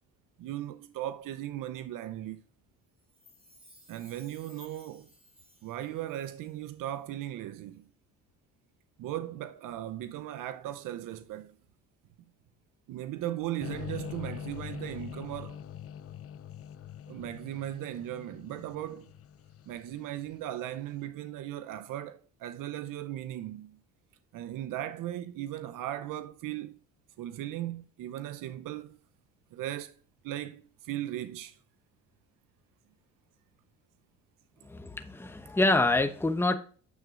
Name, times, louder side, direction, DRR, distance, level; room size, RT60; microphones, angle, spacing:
voice 1, 0.4-2.4 3.9-5.1 5.6-7.8 9.0-11.6 12.9-15.6 17.1-19.1 19.7-23.8 24.3-26.8 27.2-29.0 29.5-30.0 30.2-31.6, right 13 dB, 70° right, 0.7 m, -37 dB
Chime, 3.0-6.6 6.9-7.0, left 1 dB, 15° right, 3.7 m, -58 dB
sound 1, 13.6-20.7, left 9 dB, 45° left, 0.5 m, -43 dB
voice 2, 34.6-36.6, left 2 dB, 5° left, 0.9 m, -26 dB
9.6 x 7.4 x 2.5 m
cardioid pair, 95°, 33 cm